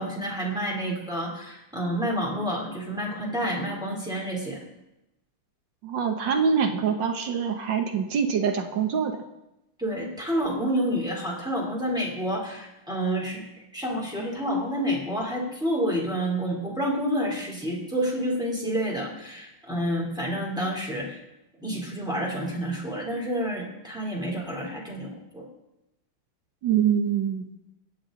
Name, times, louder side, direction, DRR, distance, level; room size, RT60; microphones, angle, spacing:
voice 1, 0.0-4.6 9.8-13.4 13.7-21.2 21.6-25.4, equal, ahead, -3 dB, 2.9 m, -29 dB
voice 2, 5.8-9.2 26.6-27.5, right 7 dB, 65° right, 5 dB, 1.5 m, -25 dB
22.0 x 8.0 x 3.8 m, 0.93 s
omnidirectional pair, 2.4 m